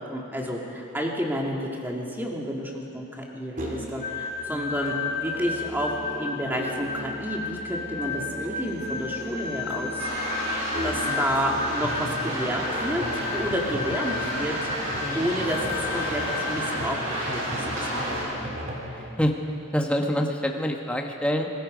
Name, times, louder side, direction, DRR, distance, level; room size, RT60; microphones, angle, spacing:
voice 1, 0.1-10.1 10.8-14.6 15.1-18.5, equal, 10° right, -1 dB, 2.3 m, -30 dB
Musical instrument, 3.6-19.1, equal, 35° right, 3.3 m, -37 dB
sound 1, 4.0-16.8, left 5 dB, 45° left, 2.0 m, -33 dB
sound 2, 10.0-18.2, right 1 dB, 65° right, 6.5 m, -31 dB
voice 2, 15.0-15.3 19.0-19.3 19.7-21.5, equal, 5° left, 2 dB, 1.4 m, -27 dB
26.0 x 20.0 x 5.2 m, 2.7 s
head